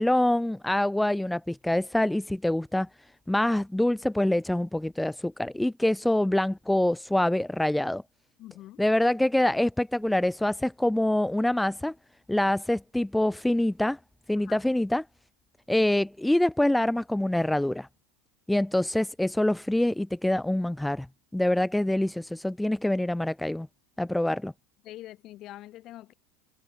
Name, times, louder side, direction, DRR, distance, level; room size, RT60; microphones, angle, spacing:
voice 1, 0.0-2.9 3.3-8.0 8.8-11.9 12.3-14.0 14.3-15.0 15.7-17.9 18.5-21.1 21.3-23.7 24.0-24.5, left 1 dB, 5° left, 0.5 m, -25 dB
voice 2, 8.4-8.8 14.4-14.6 24.8-26.1, left 15 dB, 50° left, 5.3 m, -44 dB
hypercardioid pair, 85°, 0 cm